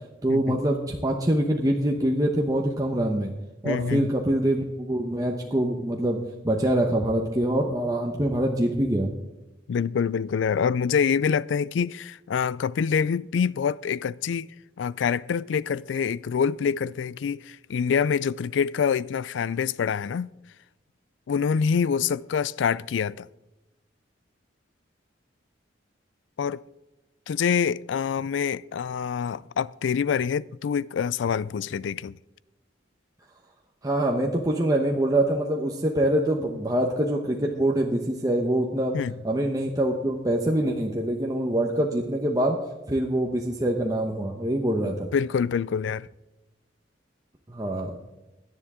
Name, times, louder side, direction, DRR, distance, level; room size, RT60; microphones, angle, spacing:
voice 1, 0.2-3.3 3.6-6.2 6.4-9.1 33.8-39.0 39.2-42.6 42.9-45.1 47.5-48.0, right 1 dB, 20° right, 0.9 m, -24 dB
voice 2, 3.6-4.1 9.7-14.5 14.8-20.3 21.3-23.3 26.4-26.6 27.3-32.2 38.9-39.1 45.1-46.1, left 6 dB, 80° left, 0.4 m, -26 dB
17.0 x 10.5 x 3.7 m
head